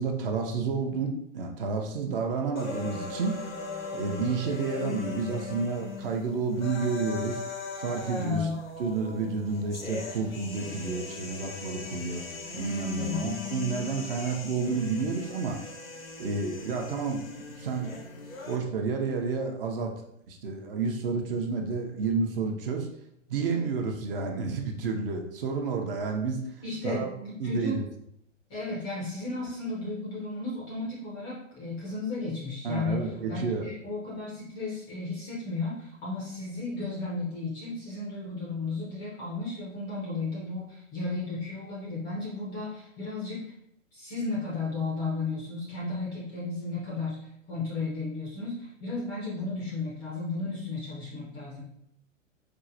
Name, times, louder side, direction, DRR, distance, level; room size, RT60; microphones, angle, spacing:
voice 1, 0.0-3.4 3.9-7.4 7.8-8.5 8.8-12.2 12.5-15.6 16.2-18.0 18.5-19.9 20.3-22.9 23.3-26.5 26.8-27.1 27.4-27.8 32.6-33.7, right 4 dB, 45° right, 3 dB, 0.6 m, -30 dB
sound 1, 2.6-18.6, left 4 dB, 90° left, 0.7 m, -39 dB
voice 2, 8.2-8.6 12.9-13.2 26.6-27.8 28.5-43.4 43.9-47.2 47.5-51.6, left 3 dB, 15° left, -6 dB, 0.4 m, -34 dB
4.5 x 2.1 x 2.5 m, 0.74 s
figure-of-eight pair, 110°, 39 cm